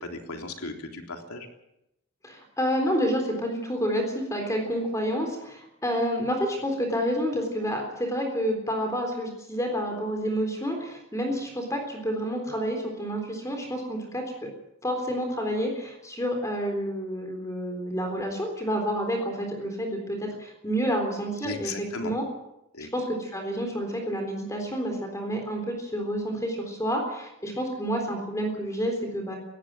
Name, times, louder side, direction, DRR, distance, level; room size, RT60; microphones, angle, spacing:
voice 1, 0.0-1.5 21.4-22.1 22.7-22.9, left 3 dB, 90° left, 3 dB, 3.5 m, -36 dB
voice 2, 2.2-14.5 14.8-22.2 22.9-29.4, equal, 15° left, 3 dB, 3.8 m, -29 dB
21.0 x 16.5 x 7.6 m, 0.86 s
head